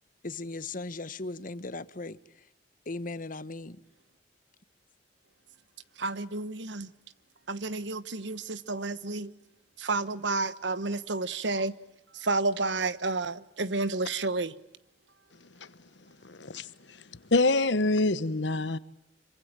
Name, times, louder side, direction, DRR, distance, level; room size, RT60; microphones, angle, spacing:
voice 1, 0.2-2.2 2.9-3.8, left 3 dB, 50° left, 1.2 m, -37 dB
voice 2, 6.0-6.9 7.5-9.3 9.8-11.7 12.1-14.5, right 3 dB, 75° right, 1.2 m, -30 dB
voice 3, 16.2-16.7 17.3-18.8, left 2 dB, 75° left, 1.2 m, -25 dB
27.0 x 25.0 x 8.9 m
head